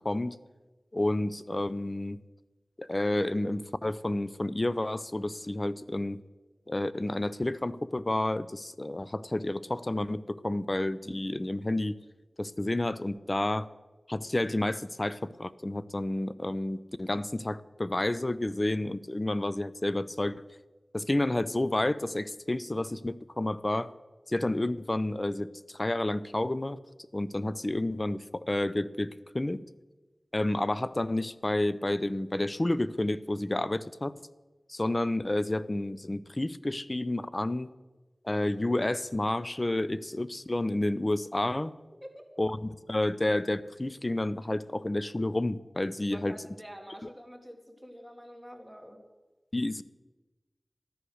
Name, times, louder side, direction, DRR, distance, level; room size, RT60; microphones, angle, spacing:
voice 1, 0.0-0.4 0.9-2.2 2.8-6.2 6.7-12.0 12.4-13.7 14.1-20.4 20.9-23.9 24.3-26.8 27.1-29.6 30.3-34.2 34.7-37.7 38.2-41.7 42.4-46.4 49.5-49.8, left 1 dB, 35° left, 16 dB, 0.6 m, -30 dB
voice 2, 46.1-49.0, equal, 5° right, 2 dB, 2.3 m, -47 dB
14.0 x 10.0 x 6.4 m, 1.2 s
wide cardioid pair, 45°, 0 cm